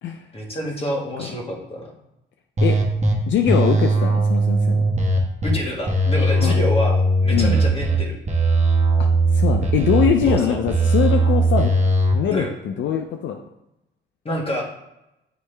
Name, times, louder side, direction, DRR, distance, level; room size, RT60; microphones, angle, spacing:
voice 1, 0.3-1.9 5.4-8.2 10.3-10.6 12.3-12.5 14.2-14.6, equal, 30° left, -1 dB, 1.6 m, -27 dB
sound 1, 2.6-3.1 3.5-5.5 5.9-8.0 8.3-10.3 10.7-12.1, right 2 dB, 35° right, 1.2 m, -18 dB
voice 2, 3.3-4.9 6.4-6.5 7.3-7.6 9.0-9.1 9.3-11.7 12.1-13.4, left 8 dB, 70° left, 4 dB, 0.5 m, -22 dB
9.5 x 3.2 x 3.3 m, 0.89 s
cardioid pair, 90°, 20 cm